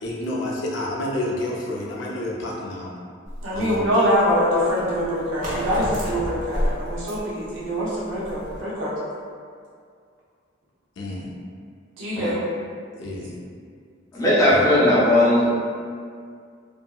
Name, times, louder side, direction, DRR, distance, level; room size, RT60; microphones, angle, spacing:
voice 1, 0.0-2.9 3.5-3.9 11.0-11.3 13.0-13.3 14.4-14.7, left 1 dB, 75° left, -3 dB, 0.5 m, -29 dB
sound 1, 3.3-8.6, equal, 45° right, 0.7 m, -31 dB
voice 2, 3.4-8.9 12.0-12.4, equal, 80° right, -8 dB, 0.7 m, -24 dB
voice 3, 14.1-15.5, left 1 dB, 20° left, -8 dB, 0.5 m, -17 dB
2.8 x 2.5 x 2.3 m, 2.2 s
head